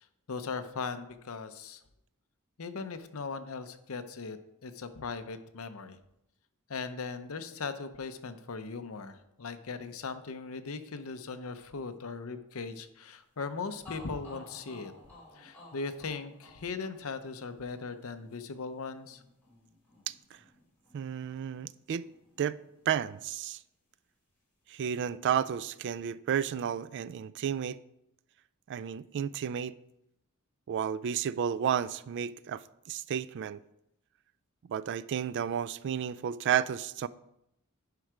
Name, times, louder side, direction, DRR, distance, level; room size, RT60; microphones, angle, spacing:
voice 1, 0.3-1.8 2.6-6.0 6.7-14.9 15.3-19.2, left 4 dB, 70° left, 0.7 m, -39 dB
sound 1, 13.4-13.5 13.8-21.7 22.0-23.1, left 2 dB, 10° left, 3.5 m, -55 dB
voice 2, 20.9-22.1 22.4-22.6 22.9-23.6 24.7-27.8 28.7-29.8 30.7-33.6 34.7-37.1, right 8 dB, 55° right, 0.3 m, -32 dB
10.5 x 4.6 x 4.9 m
head